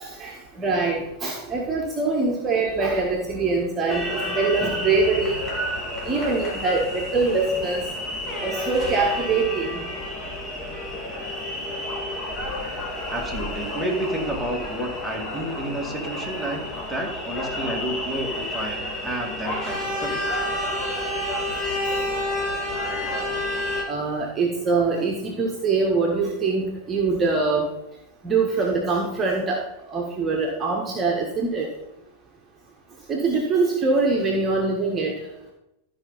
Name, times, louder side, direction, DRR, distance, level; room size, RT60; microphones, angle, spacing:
voice 1, 0.0-5.4 6.0-7.8 8.4-9.8 21.9-22.0 23.9-27.7 28.2-29.6 29.9-31.7 33.1-35.1, right 3 dB, 20° right, 0 dB, 1.5 m, -23 dB
sound 1, 3.9-23.8, left 1 dB, 25° left, 2.7 m, -30 dB
voice 2, 13.1-16.6 16.9-20.4, right 1 dB, ahead, -1 dB, 2.4 m, -30 dB
13.0 x 5.2 x 5.7 m, 0.90 s
figure-of-eight pair, 90°, 0 cm